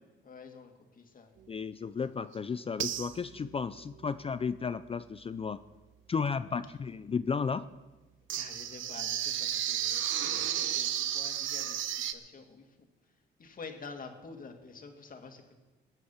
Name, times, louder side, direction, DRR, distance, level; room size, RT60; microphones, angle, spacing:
voice 1, 0.2-1.3 2.5-2.6 8.3-13.1 13.4-15.5, left 4 dB, 45° left, 4 dB, 2.3 m, -49 dB
voice 2, 1.5-5.6 6.1-7.6, left 5 dB, 30° left, 13 dB, 0.5 m, -33 dB
sound 1, 2.3-2.4 2.8-3.5 8.3-12.1, right 10 dB, 80° right, 0.9 m, -32 dB
20.5 x 8.3 x 5.8 m, 1.2 s
cardioid pair, 90°, 20 cm